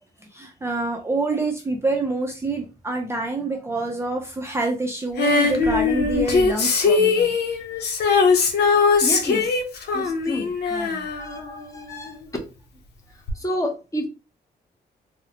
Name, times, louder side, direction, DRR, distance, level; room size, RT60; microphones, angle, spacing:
voice 1, 0.3-7.3 10.7-11.1, right 2 dB, 15° right, 1 dB, 0.5 m, -27 dB
Female singing, 5.2-12.1 13.3-13.4, left 4 dB, 85° left, 0.7 m, -21 dB
voice 2, 9.0-9.5 9.9-10.5 11.2-12.1 13.4-14.1, left 1 dB, 20° left, 2 dB, 0.7 m, -29 dB
3.8 x 2.1 x 2.8 m, 0.31 s
wide cardioid pair, 145°, 17 cm